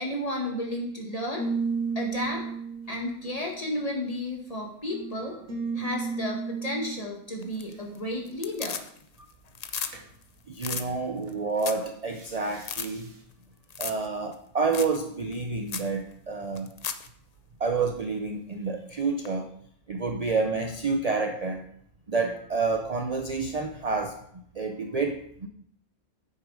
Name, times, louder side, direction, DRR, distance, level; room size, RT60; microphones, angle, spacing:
voice 1, 0.0-1.5 2.0-2.4 2.9-5.4 5.8-8.8, left 1 dB, 25° left, -1 dB, 1.8 m, -32 dB
sound 1, 1.4-4.2 4.9-7.0 9.9-10.1 11.3-11.6 12.1-13.1, right 5 dB, 65° right, 2.0 m, -34 dB
sound 2, 7.4-8.0 8.3-9.2 9.5-9.9 10.2-10.3 10.6-10.9 11.3-11.4 11.6-11.9 12.2-12.3 12.6-12.9 13.7-14.1 14.3-14.4 14.7-15.0 15.3-15.4 15.7-15.9 16.5-17.1 19.2-19.3, left 6 dB, 75° left, 0.3 m, -34 dB
voice 2, 10.5-13.1 13.8-16.7 17.6-19.5 19.9-21.7 22.1-24.2 24.5-25.5, right 4 dB, 45° right, 5 dB, 0.5 m, -29 dB
9.0 x 6.7 x 4.8 m, 0.66 s
omnidirectional pair, 1.5 m